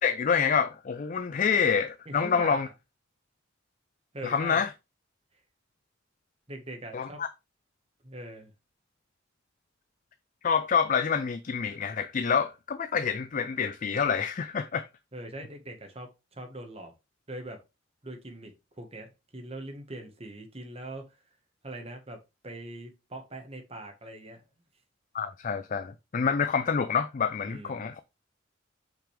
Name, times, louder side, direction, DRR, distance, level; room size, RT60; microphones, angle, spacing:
voice 1, 0.0-2.7 4.2-4.7 6.9-7.3 10.4-14.9 25.1-28.0, left 6 dB, 40° left, 0.4 m, -27 dB
voice 2, 2.1-2.7 4.1-4.6 6.5-7.2 8.0-8.5 15.1-16.9 17.3-17.6 18.0-21.2 21.6-24.4 27.4-27.9, right 1 dB, 30° right, 1.5 m, -42 dB
5.9 x 5.2 x 3.3 m
head